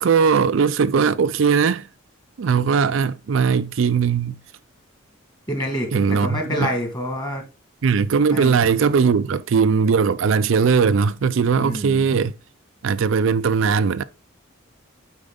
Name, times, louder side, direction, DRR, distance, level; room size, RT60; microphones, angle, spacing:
voice 1, 0.0-1.9 2.4-4.4 5.9-6.7 7.8-12.3 12.8-14.0, right 6 dB, 70° right, 0.4 m, -19 dB
voice 2, 5.5-7.4 8.3-8.6 11.6-12.1, equal, 20° left, 2.0 m, -27 dB
8.7 x 4.5 x 3.8 m
head